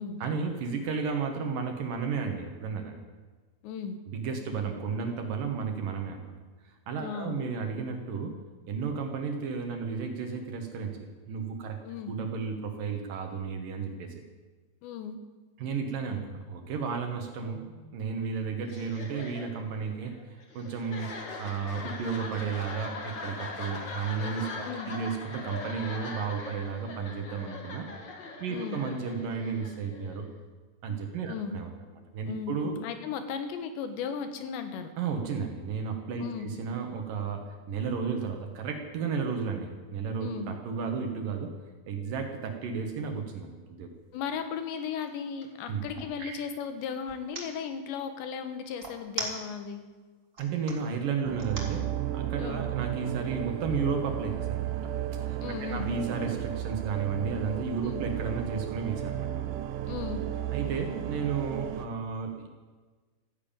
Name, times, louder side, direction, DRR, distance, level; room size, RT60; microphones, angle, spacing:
voice 1, 0.2-3.0 4.1-6.3 6.7-8.4 8.7-11.8 12.1-14.2 15.6-27.9 28.4-30.3 30.8-31.7 32.1-32.8 35.0-41.5 41.9-43.9 45.7-45.8 46.2-46.4 50.4-54.9 55.3-59.5 60.5-62.6, right 5 dB, 65° right, 4 dB, 2.6 m, -33 dB
voice 2, 3.6-4.0 7.0-7.4 11.8-12.1 14.8-15.2 24.6-24.9 28.5-28.8 31.3-31.6 32.3-34.9 36.2-36.5 40.2-40.5 44.1-49.8 52.4-52.6 55.4-55.9 57.8-58.0 59.9-60.2, left 7 dB, 80° left, 8 dB, 3.5 m, -36 dB
sound 1, 18.6-30.3, left 3 dB, 50° left, 1.3 m, -41 dB
sound 2, 43.9-44.1 44.6-46.2 47.1-47.5 48.8-49.8 50.2-50.8 51.4-51.8, right 2 dB, 25° right, 1.9 m, -38 dB
sound 3, 51.2-61.9, right 11 dB, 80° right, 1.9 m, -34 dB
14.5 x 11.0 x 8.8 m, 1.4 s
omnidirectional pair, 5.0 m